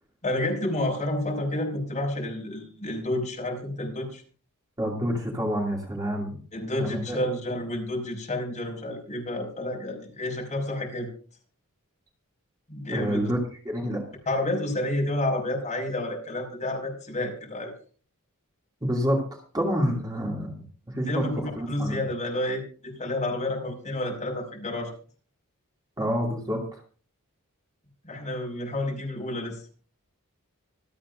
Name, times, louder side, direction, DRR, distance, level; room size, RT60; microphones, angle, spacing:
voice 1, 0.2-4.2 6.5-11.1 12.7-13.3 14.3-17.7 21.0-24.9 28.0-29.6, left 1 dB, 30° left, 1 dB, 5.5 m, -30 dB
voice 2, 4.8-6.4 6.8-7.2 12.9-13.4 13.6-14.0 18.8-19.2 19.5-22.0 26.0-26.8, equal, 20° right, -1 dB, 2.5 m, -28 dB
26.0 x 8.9 x 2.6 m, 0.42 s
head